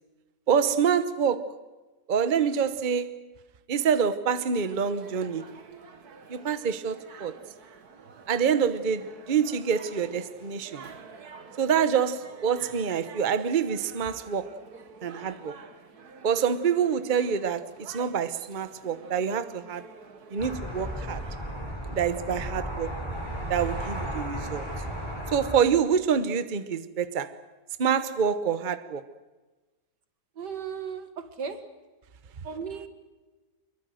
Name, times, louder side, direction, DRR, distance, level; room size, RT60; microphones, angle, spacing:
voice 1, 0.5-1.5 2.1-3.1 3.7-5.5 6.3-7.4 8.3-10.9 11.6-14.5 15.0-15.5 16.2-19.9 20.3-21.2 21.9-23.0 23.5-24.7 25.3-27.4 27.8-29.1, right 7 dB, 35° right, 1.0 m, -26 dB
sound 1, 4.5-21.4, right 5 dB, 65° right, 2.1 m, -48 dB
sound 2, 20.4-25.6, equal, 15° left, 5.6 m, -34 dB
voice 2, 30.4-31.7 32.4-32.9, right 6 dB, 85° right, 2.3 m, -36 dB
24.5 x 22.5 x 7.8 m
omnidirectional pair, 1.8 m